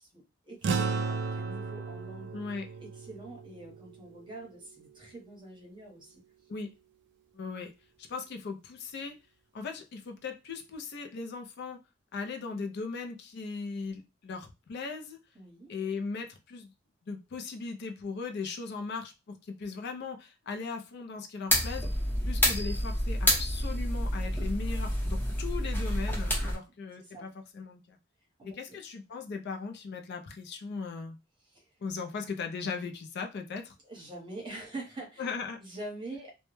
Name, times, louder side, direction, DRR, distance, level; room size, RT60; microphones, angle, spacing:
voice 1, 0.0-2.4 2.8-6.2 15.3-15.7 26.3-26.6 26.9-27.3 28.4-28.8 31.5-31.7 33.8-35.3 35.6-36.3, right 2 dB, 25° right, -1 dB, 0.8 m, -45 dB
sound 1, 0.6-5.3, right 4 dB, 60° right, 0.3 m, -35 dB
voice 2, 2.3-2.7 6.5-6.7 7.3-7.7 8.0-9.1 9.5-11.8 12.1-15.2 15.7-16.7 17.1-19.1 19.4-21.9 22.2-28.0 28.6-31.2 31.8-33.7 35.2-35.6, left 4 dB, 55° left, 4 dB, 0.4 m, -38 dB
sound 2, 21.5-26.5, equal, 10° left, 0.7 m, -28 dB
2.1 x 2.0 x 3.0 m, 0.27 s
head